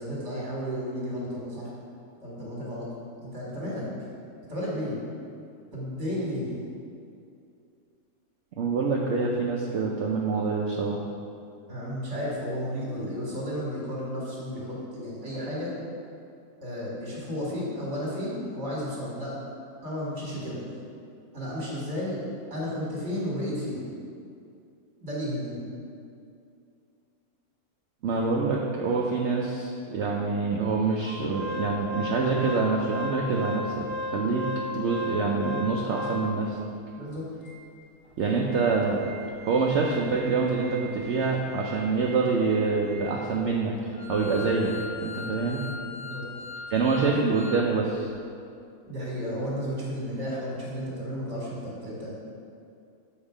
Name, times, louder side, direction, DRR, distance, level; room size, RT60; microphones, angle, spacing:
voice 1, 0.0-1.7 2.2-2.9 3.2-3.8 4.5-5.0 5.7-6.5 11.7-15.7 16.6-19.3 19.8-20.6 21.3-22.2 22.5-23.9 25.0-25.6 37.0-37.2 45.9-46.2 46.7-46.8 48.9-52.2, equal, 45° right, -6 dB, 2.0 m, -33 dB
voice 2, 8.6-11.0 28.0-34.5 34.7-36.6 38.2-39.0 39.4-44.7 45.0-45.6 46.7-48.1, right 4 dB, 65° right, -1 dB, 0.7 m, -26 dB
Organ, 31.0-36.6 37.1-37.2 37.4-37.6 38.0-47.6 48.0-48.1, left 2 dB, 35° left, 1.3 m, -37 dB
7.2 x 4.4 x 4.9 m, 2.4 s
omnidirectional pair, 1.6 m